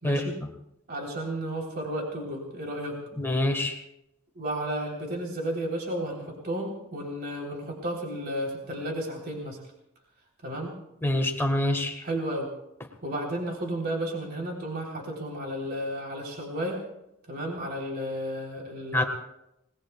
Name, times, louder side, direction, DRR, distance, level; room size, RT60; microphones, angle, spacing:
voice 1, 0.0-0.4 0.9-3.0 4.4-9.6 10.4-10.8 12.0-12.5 13.0-16.8 17.3-19.1, right 1 dB, 45° right, -1 dB, 3.5 m, -33 dB
voice 2, 3.2-3.8 11.0-12.0 18.9-19.0, left 1 dB, 10° left, 3 dB, 1.4 m, -25 dB
30.0 x 19.5 x 2.3 m, 0.83 s
head